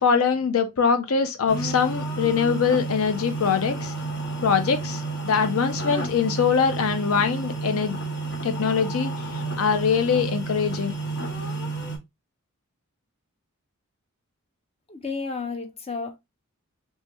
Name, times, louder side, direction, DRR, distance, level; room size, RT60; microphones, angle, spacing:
voice 1, 0.0-3.9 4.4-8.0 8.4-10.9, left 6 dB, 70° left, 0.5 m, -23 dB
sound 1, 1.5-12.0, right 3 dB, 50° left, 1.2 m, -31 dB
voice 2, 14.9-16.2, left 4 dB, 25° left, 0.6 m, -32 dB
3.3 x 3.2 x 2.9 m
head